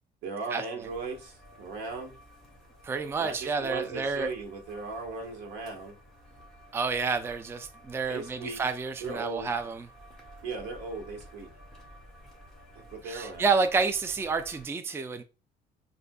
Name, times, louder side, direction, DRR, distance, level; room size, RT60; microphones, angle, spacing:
voice 1, 0.2-2.2 3.2-5.9 8.1-8.6 9.0-9.5 10.4-11.5 12.7-13.5, right 3 dB, 85° right, 1.3 m, -37 dB
sound 1, 0.8-14.7, equal, ahead, 1.6 m, -53 dB
voice 2, 2.8-4.3 6.7-9.9 13.0-15.2, right 4 dB, 15° right, 0.4 m, -29 dB
6.4 x 2.5 x 2.3 m
cardioid pair, 110°, 17 cm